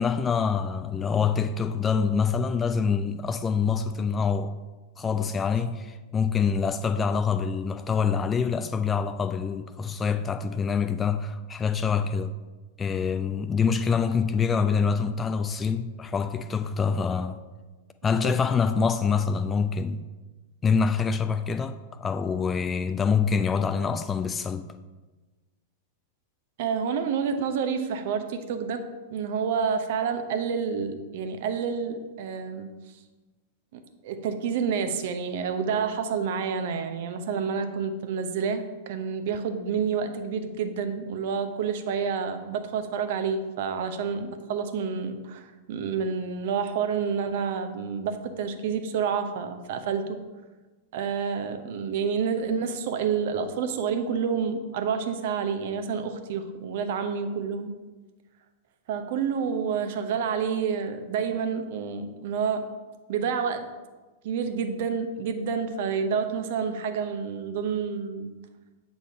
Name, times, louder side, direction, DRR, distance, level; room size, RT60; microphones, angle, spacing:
voice 1, 0.0-4.5 5.0-12.3 12.8-17.4 18.0-20.0 20.6-24.7, left 6 dB, 20° left, 0.4 m, -25 dB
voice 2, 26.6-28.8 29.1-32.7 33.7-50.2 50.9-57.7 58.9-62.7 63.1-63.7 64.2-68.3, right 6 dB, 50° right, 0.8 m, -29 dB
8.2 x 4.0 x 4.7 m
figure-of-eight pair, 95°, 0 cm